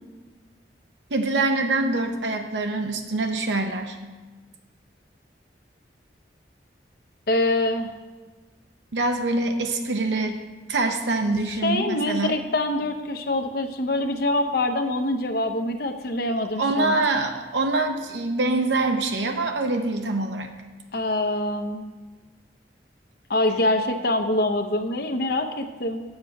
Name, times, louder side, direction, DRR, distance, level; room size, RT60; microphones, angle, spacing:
voice 1, 1.1-4.0 8.9-10.4 10.7-12.4 16.6-20.5, right 2 dB, 75° right, 5 dB, 0.8 m, -24 dB
voice 2, 7.3-7.9 11.6-17.0 20.9-21.9 23.3-26.0, left 1 dB, 55° left, 6 dB, 0.7 m, -25 dB
7.4 x 7.3 x 5.3 m, 1.3 s
head